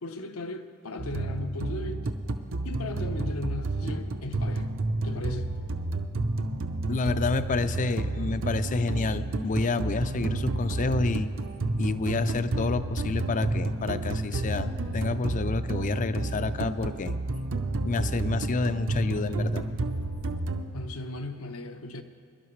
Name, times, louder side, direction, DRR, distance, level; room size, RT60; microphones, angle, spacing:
voice 1, 0.0-2.1 2.6-4.7 5.0-5.5 20.7-22.0, left 2 dB, 75° left, 0.8 m, -37 dB
sound 1, 1.0-20.6, right 2 dB, 65° right, 0.7 m, -30 dB
voice 2, 6.9-11.3 11.8-17.2 17.8-19.7, left 3 dB, 35° left, 0.4 m, -29 dB
23.0 x 12.0 x 3.2 m
head